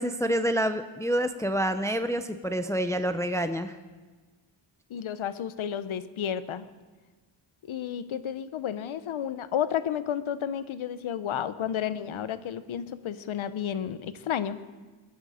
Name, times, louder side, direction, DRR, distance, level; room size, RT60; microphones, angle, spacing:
voice 1, 0.0-3.8, equal, 5° left, 9 dB, 0.5 m, -27 dB
voice 2, 4.9-6.7 7.7-14.6, left 9 dB, 80° left, 13 dB, 0.8 m, -32 dB
21.5 x 10.5 x 5.0 m, 1.3 s
wide cardioid pair, 135°, 48 cm